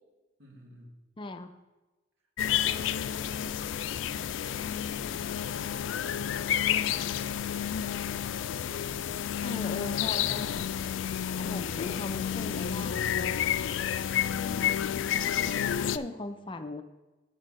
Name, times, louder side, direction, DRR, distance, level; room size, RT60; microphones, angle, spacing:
voice 1, 0.4-1.0 2.4-6.2 15.5-16.6, equal, 90° right, -1 dB, 2.1 m, -53 dB
voice 2, 1.2-1.5 9.4-10.6 11.3-13.4 15.8-16.8, left 2 dB, 25° left, 9 dB, 0.5 m, -39 dB
sound 1, 2.4-16.0, left 9 dB, 85° left, 0.3 m, -30 dB
6.6 x 6.5 x 6.1 m, 1.1 s
head